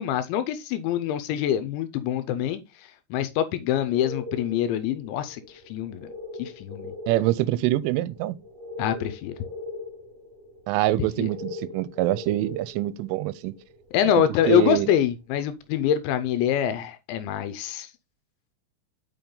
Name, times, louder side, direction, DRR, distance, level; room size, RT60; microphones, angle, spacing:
voice 1, 0.0-2.6 3.1-5.4 5.7-6.1 6.4-6.9 8.8-9.3 11.2-11.3 13.9-17.9, left 10 dB, 80° left, 2.8 m, -25 dB
sound 1, 3.8-14.9 15.3-15.4, left 2 dB, 65° right, 4.0 m, -41 dB
voice 2, 7.1-8.4 10.7-13.5 14.5-14.9, right 16 dB, 90° right, 3.1 m, -25 dB
6.9 x 5.8 x 3.8 m
omnidirectional pair, 5.5 m